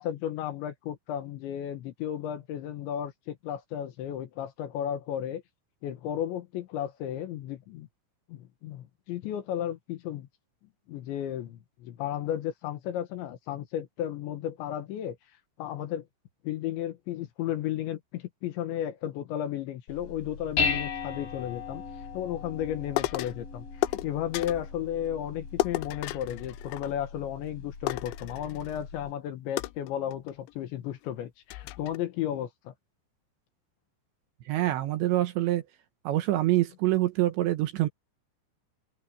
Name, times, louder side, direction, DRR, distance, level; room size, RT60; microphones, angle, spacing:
voice 1, 0.0-5.4 5.8-7.9 8.3-10.3 10.9-15.2 15.6-16.1 16.4-32.7, left 11 dB, 70° left, 3.4 m, -34 dB
Dishes pots and pans, 19.9-29.1, left 5 dB, 45° left, 7.2 m, -37 dB
sound 1, 23.0-23.4 23.8-24.7 25.6-27.2 27.5-27.6 27.9-28.9 29.6-30.5 31.0-31.1 31.5-32.0, left 17 dB, 85° left, 2.7 m, -33 dB
voice 2, 34.5-35.6 36.0-37.9, right 15 dB, 75° right, 3.0 m, -25 dB
omnidirectional pair, 5.9 m